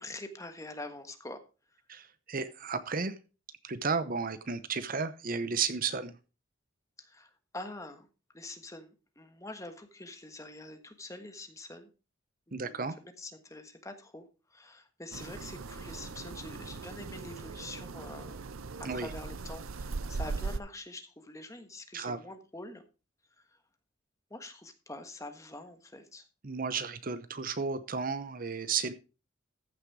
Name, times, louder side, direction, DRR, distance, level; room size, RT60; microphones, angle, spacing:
voice 1, 0.0-1.4 7.0-8.1 8.3-11.9 12.5-14.3 14.5-18.4 18.8-22.8 24.3-26.2, left 2 dB, 15° left, 7 dB, 1.4 m, -45 dB
voice 2, 1.9-3.1 3.6-6.1 12.5-13.0 18.8-19.1 21.9-22.2 26.4-28.9, right 5 dB, 40° right, 12 dB, 0.8 m, -33 dB
sound 1, 15.1-20.6, right 4 dB, 85° right, 0.7 m, -39 dB
14.5 x 6.6 x 4.7 m, 0.32 s
head